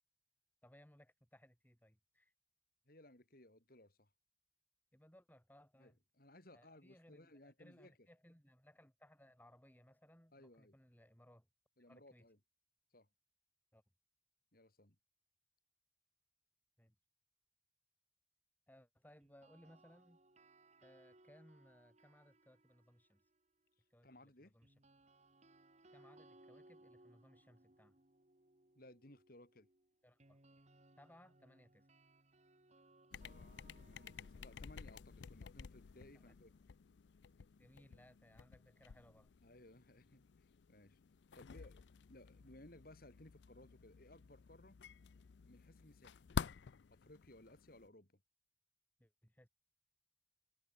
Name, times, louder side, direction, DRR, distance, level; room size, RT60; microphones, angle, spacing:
voice 1, 0.6-2.3 4.9-6.0 6.5-11.5 11.9-12.3 13.7-13.8 16.8-16.9 18.7-20.2 20.8-23.2 23.9-24.7 25.9-27.9 30.0-30.4 31.0-31.9 36.1-36.3 37.6-39.3 41.5-41.7 49.0-49.5, equal, 10° left, 4.9 m, -65 dB
voice 2, 2.9-4.1 5.8-8.0 10.3-10.8 11.8-12.4 12.9-13.1 14.5-15.0 24.0-24.6 28.8-29.7 33.2-36.5 39.4-41.0 41.3-44.8 45.5-46.3 46.9-48.2, left 1 dB, 50° left, 3.5 m, -61 dB
sound 1, 19.2-23.4 24.6-36.5, right 2 dB, 35° right, 2.0 m, -67 dB
sound 2, 33.1-47.9, left 5 dB, 70° left, 0.5 m, -50 dB
head